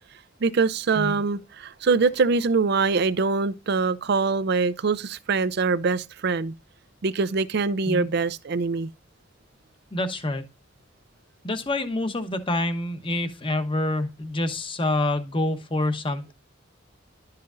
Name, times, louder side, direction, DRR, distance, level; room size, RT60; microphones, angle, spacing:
voice 1, 0.4-6.5 7.0-8.9, right 4 dB, 55° right, 0.5 m, -23 dB
voice 2, 9.9-10.4 11.4-16.3, left 2 dB, 25° left, 0.9 m, -27 dB
11.5 x 5.7 x 2.6 m
head